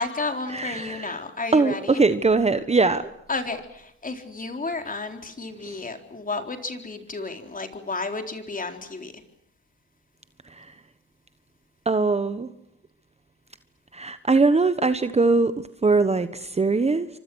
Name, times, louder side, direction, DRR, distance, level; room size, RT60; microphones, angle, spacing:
voice 1, 0.0-2.0 3.3-9.1, left 3 dB, 25° left, 6 dB, 4.0 m, -32 dB
voice 2, 0.5-1.2 1.5-3.1 5.6-5.8 10.5-10.7 11.8-12.5 13.9-17.1, right 3 dB, 20° right, 12 dB, 1.2 m, -21 dB
29.0 x 25.0 x 6.4 m, 0.76 s
cardioid pair, 90°, 30 cm